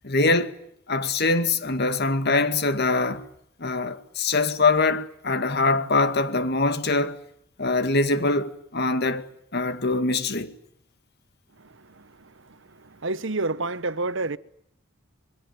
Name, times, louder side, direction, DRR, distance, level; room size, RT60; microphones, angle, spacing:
voice 1, 0.0-0.5 0.9-3.2 3.6-7.2 7.6-9.2 9.5-10.5, left 3 dB, 50° left, 2.1 m, -23 dB
voice 2, 11.6-14.4, right 2 dB, 65° right, 1.1 m, -30 dB
25.5 x 22.0 x 9.4 m
head